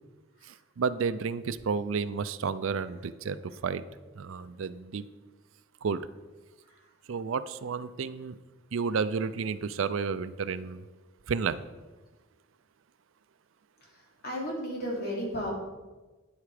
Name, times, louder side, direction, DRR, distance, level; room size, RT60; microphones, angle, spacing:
voice 1, 0.8-3.8 4.2-5.0 5.8-6.0 7.1-8.3 8.7-10.8 11.3-11.6, right 5 dB, 70° right, 14 dB, 0.4 m, -31 dB
voice 2, 14.2-15.5, equal, 50° left, -2 dB, 2.9 m, -33 dB
9.6 x 8.1 x 5.0 m, 1.2 s
head